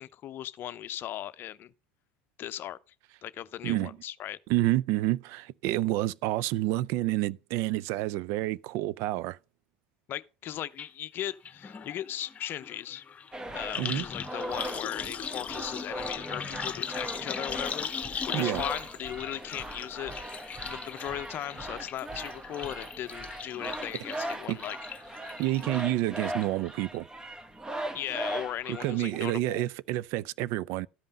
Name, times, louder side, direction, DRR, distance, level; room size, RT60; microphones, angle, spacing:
voice 1, 0.0-1.7 2.4-2.8 3.2-4.4 10.1-13.0 13.5-20.1 20.6-24.8 27.9-29.6, left 12 dB, 45° left, 0.6 m, -38 dB
voice 2, 3.6-4.0 4.5-9.4 13.8-14.0 18.3-18.6 24.5-24.6 25.4-27.1 28.7-30.9, right 16 dB, 60° right, 0.4 m, -29 dB
sound 1, 10.8-10.9 11.2-25.8 26.2-26.7 26.9-27.0, left 6 dB, 30° left, 1.1 m, -39 dB
sound 2, 13.3-29.3, right 1 dB, 15° right, 1.1 m, -39 dB
13.0 x 5.4 x 5.3 m
hypercardioid pair, 85°, 5 cm